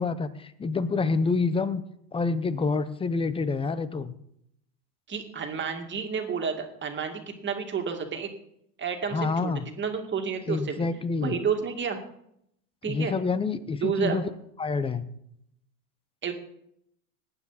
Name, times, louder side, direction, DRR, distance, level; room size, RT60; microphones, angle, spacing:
voice 1, 0.0-1.8 2.1-4.1 9.1-9.7 10.5-11.3 12.9-14.3 14.6-15.1, left 4 dB, 10° left, 15 dB, 0.6 m, -27 dB
voice 2, 5.1-8.3 8.8-10.9 11.2-12.0 12.8-13.2 13.8-14.2 16.2-16.3, right 6 dB, 25° right, 4 dB, 2.2 m, -30 dB
19.0 x 9.4 x 4.2 m, 0.73 s
supercardioid pair, 125°, 48 cm